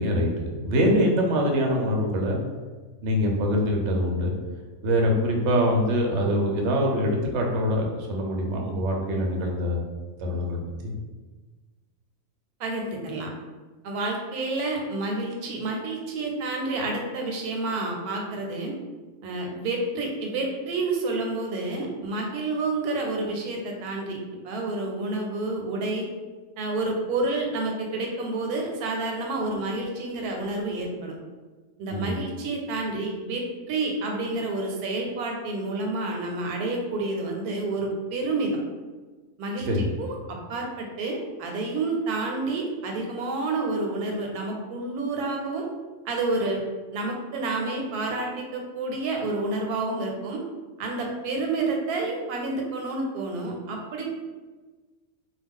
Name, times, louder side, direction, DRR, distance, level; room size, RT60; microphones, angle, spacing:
voice 1, 0.0-2.4 3.0-4.3 4.8-9.8 10.2-10.9 31.9-32.1 39.7-39.9, equal, 65° right, 0 dB, 0.7 m, -24 dB
voice 2, 12.6-13.3 13.8-18.7 19.2-24.2 24.4-26.1 26.6-31.2 31.8-38.5 39.4-45.7 46.1-46.6 46.9-50.4 50.8-54.1, right 2 dB, 85° right, 1 dB, 1.1 m, -29 dB
2.3 x 2.2 x 3.5 m, 1.3 s
omnidirectional pair, 1.6 m